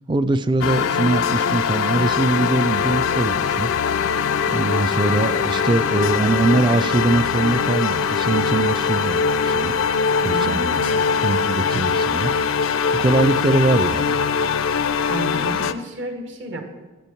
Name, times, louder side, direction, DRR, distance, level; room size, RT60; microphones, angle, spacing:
voice 1, 0.1-3.7 4.5-9.7 10.2-12.3 12.9-14.2, right 2 dB, 20° right, 14 dB, 0.3 m, -22 dB
sound 1, 0.6-15.7, left 6 dB, 75° left, 0.4 m, -21 dB
voice 2, 10.2-10.7 15.1-16.6, right 1 dB, 60° right, 5 dB, 1.5 m, -31 dB
12.5 x 8.5 x 4.5 m, 1.2 s
head